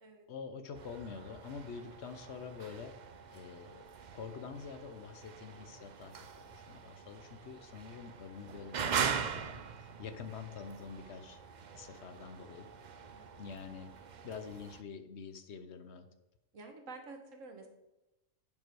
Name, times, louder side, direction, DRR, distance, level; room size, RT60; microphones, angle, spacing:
voice 1, 0.3-2.9 3.3-11.4 11.7-12.7 13.4-13.9 14.2-16.1, left 6 dB, 60° left, 9 dB, 1.0 m, -46 dB
sound 1, 0.7-14.8, right 7 dB, 55° right, 0.5 m, -42 dB
voice 2, 12.0-12.3 13.1-13.5 16.5-17.7, right 3 dB, 75° right, 4 dB, 1.7 m, -51 dB
10.5 x 5.4 x 4.6 m, 0.99 s
omnidirectional pair, 1.3 m